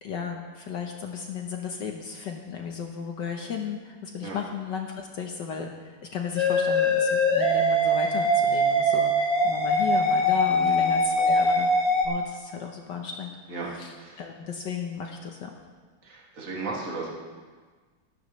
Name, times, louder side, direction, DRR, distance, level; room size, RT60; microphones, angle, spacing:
voice 1, 0.0-11.7 12.0-13.3 13.6-15.5, left 6 dB, 65° left, 3 dB, 1.4 m, -35 dB
sound 1, 6.4-12.1, equal, 30° left, 1.7 m, -22 dB
voice 2, 10.5-10.9 13.5-14.2 16.0-17.1, right 3 dB, 40° right, -4 dB, 2.5 m, -35 dB
16.5 x 12.5 x 3.2 m, 1.4 s
omnidirectional pair, 2.3 m